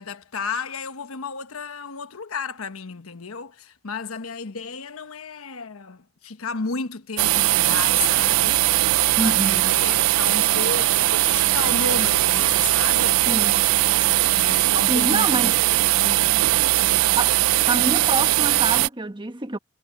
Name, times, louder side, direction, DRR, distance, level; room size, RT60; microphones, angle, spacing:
voice 1, 0.0-8.7 9.2-13.3 14.4-15.4 15.9-16.4, left 4 dB, 80° left, 1.1 m, -33 dB
sound 1, 7.2-18.9, right 16 dB, 75° right, 0.4 m, -20 dB
Wind instrument woodwind instrument, 9.2-16.9, left 3 dB, 25° left, 7.8 m, -57 dB
voice 2, 9.2-9.8 13.3-13.6 14.9-15.6 17.2-17.4 17.7-19.6, right 2 dB, 20° right, 1.3 m, -26 dB
head